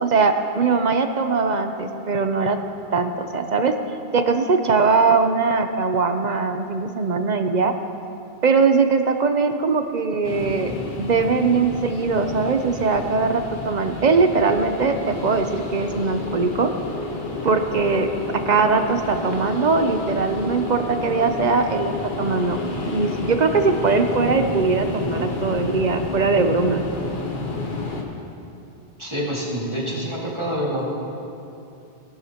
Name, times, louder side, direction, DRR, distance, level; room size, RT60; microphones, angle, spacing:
voice 1, 0.0-2.6 2.9-7.7 8.4-10.7 11.0-16.7 17.4-18.1 18.5-22.6 22.9-26.8, right 4 dB, 50° right, 7 dB, 0.7 m, -21 dB
sound 1, 10.2-28.0, left 3 dB, 55° left, 1.3 m, -30 dB
voice 2, 29.0-30.9, equal, 25° right, -5 dB, 2.2 m, -26 dB
18.5 x 11.5 x 2.9 m, 2.7 s
omnidirectional pair, 1.1 m